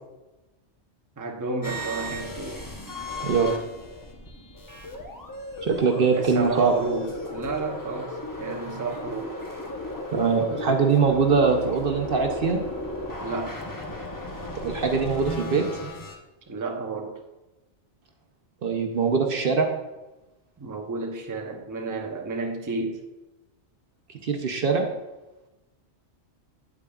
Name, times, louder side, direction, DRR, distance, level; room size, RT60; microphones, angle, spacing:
voice 1, 1.2-2.7 6.1-9.3 13.2-13.6 16.5-17.2 20.6-23.0, right 3 dB, 20° right, 2 dB, 0.6 m, -32 dB
sound 1, 1.6-16.2, left 1 dB, 20° left, 0.7 m, -35 dB
voice 2, 3.2-3.5 5.6-6.7 10.1-12.6 14.6-15.6 18.6-19.7 24.2-24.9, right 5 dB, 55° right, 4 dB, 0.9 m, -22 dB
8.5 x 8.5 x 2.3 m, 1.1 s
omnidirectional pair, 1.2 m